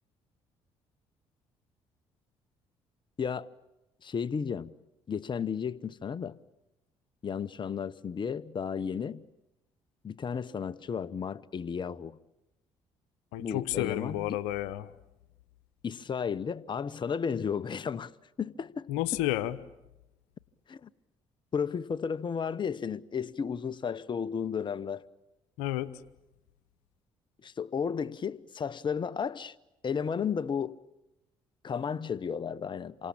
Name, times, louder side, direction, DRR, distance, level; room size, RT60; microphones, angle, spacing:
voice 1, 3.2-3.5 4.0-4.7 5.1-6.4 7.2-9.2 10.0-12.2 13.4-14.4 15.8-18.1 18.4-18.9 20.7-20.9 21.5-25.0 27.4-29.6 29.8-30.8 31.6-33.1, left 6 dB, 40° left, 17 dB, 0.9 m, -33 dB
voice 2, 13.3-14.9 18.9-19.6 25.6-25.9, left 15 dB, 85° left, 15 dB, 1.0 m, -31 dB
28.0 x 24.5 x 8.7 m, 0.93 s
supercardioid pair, 65°, 12 cm